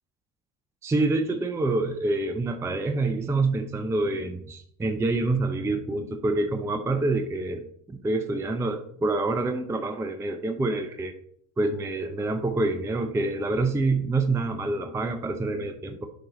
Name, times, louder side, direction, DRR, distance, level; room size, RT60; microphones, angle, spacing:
voice 1, 0.8-11.1 11.6-16.1, right 2 dB, 5° right, 7 dB, 0.6 m, -27 dB
11.0 x 4.0 x 4.1 m, 0.67 s
figure-of-eight pair, 65°, 46 cm